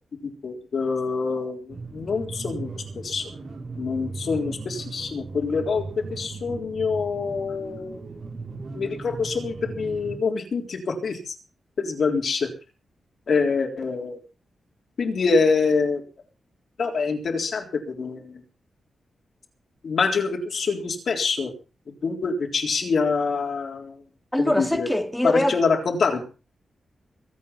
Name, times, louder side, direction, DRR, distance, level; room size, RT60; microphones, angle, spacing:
voice 1, 0.4-3.3 3.8-8.1 8.7-11.4 11.8-12.5 13.3-14.2 15.0-16.0 16.8-18.4 19.8-21.5 21.9-24.0 24.4-24.9 25.2-26.2, left 4 dB, 55° left, 3.7 m, -25 dB
sound 1, 1.7-10.2, right 3 dB, 50° right, 5.9 m, -37 dB
voice 2, 24.3-25.6, left 1 dB, 5° left, 2.1 m, -23 dB
23.0 x 8.6 x 5.7 m
wide cardioid pair, 155°, 0 cm